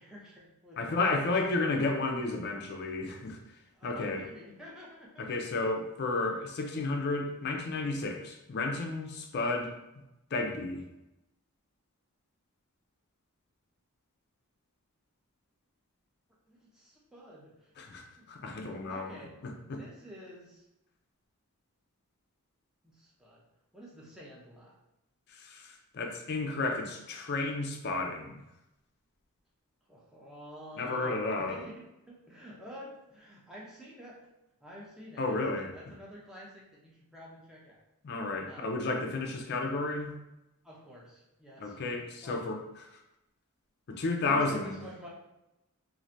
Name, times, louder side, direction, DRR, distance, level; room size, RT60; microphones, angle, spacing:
voice 1, 0.0-1.3 3.7-5.2 6.1-6.2 16.5-17.9 18.2-18.3 18.6-20.6 22.8-23.4 23.7-24.8 29.9-34.2 34.6-37.8 38.4-38.8 40.6-42.4 43.9-45.1, equal, 5° right, -6 dB, 0.6 m, -49 dB
voice 2, 0.8-3.4 3.8-4.3 5.2-9.7 10.3-10.9 17.8-19.8 25.3-28.4 30.8-31.6 35.2-35.7 38.0-40.1 41.6-42.6 42.9-43.0 44.0-44.8, left 3 dB, 45° left, 3 dB, 0.4 m, -32 dB
3.1 x 2.5 x 2.6 m, 0.91 s
head